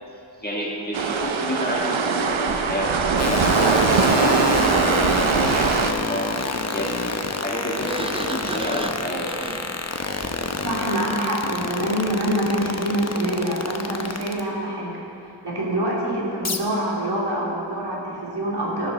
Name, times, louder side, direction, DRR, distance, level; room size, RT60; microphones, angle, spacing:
voice 1, 0.4-5.0 5.3-9.3, equal, 20° left, -3 dB, 1.7 m, -30 dB
sound 1, 0.9-5.9, right 5 dB, 90° right, 0.8 m, -21 dB
sound 2, 3.2-14.4 16.4-16.6, left 3 dB, 35° left, 0.8 m, -26 dB
Sliding door, 7.8-10.6, right 2 dB, 10° right, 0.6 m, -34 dB
voice 2, 10.6-15.0 15.4-18.9, right 1 dB, 60° right, -5 dB, 2.8 m, -25 dB
12.5 x 12.0 x 4.1 m, 2.7 s
wide cardioid pair, 75°, 45 cm